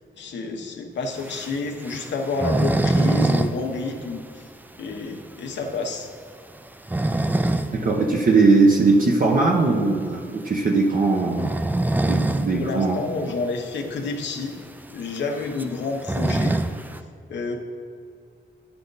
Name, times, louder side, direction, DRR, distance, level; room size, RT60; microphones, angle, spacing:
voice 1, 0.2-4.4 4.8-6.1 12.5-14.6 14.9-16.6 17.3-17.6, left 3 dB, 85° left, 3 dB, 1.0 m, -29 dB
sound 1, 1.2-3.5 3.8-3.9 4.3-4.4 4.9-5.0 6.6-7.7 8.1-8.3 9.8-10.0 11.2-12.5 12.9-13.0 13.2-13.3 14.0-14.1 14.4-17.0, right 2 dB, 10° right, 0.4 m, -24 dB
voice 2, 7.7-11.5 12.1-13.0, right 3 dB, 50° right, 0 dB, 0.8 m, -19 dB
9.9 x 5.8 x 4.0 m, 2.3 s
cardioid pair, 95°, 18 cm